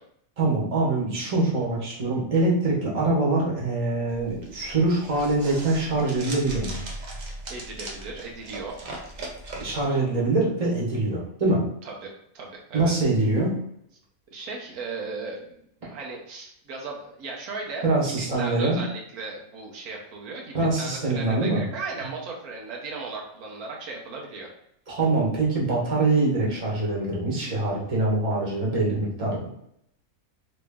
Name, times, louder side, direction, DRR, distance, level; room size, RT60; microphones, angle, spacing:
voice 1, 0.4-6.8 9.6-11.6 12.7-13.6 17.8-18.8 20.5-21.6 24.9-29.5, right 2 dB, 30° right, -4 dB, 1.1 m, -24 dB
sound 1, 4.1-9.8, right 2 dB, 50° right, 0.5 m, -38 dB
voice 2, 7.5-8.7 11.8-12.9 14.3-15.6 15.9-24.5, right 3 dB, 85° right, -1 dB, 1.3 m, -36 dB
3.1 x 3.0 x 3.4 m, 0.73 s
omnidirectional pair, 1.5 m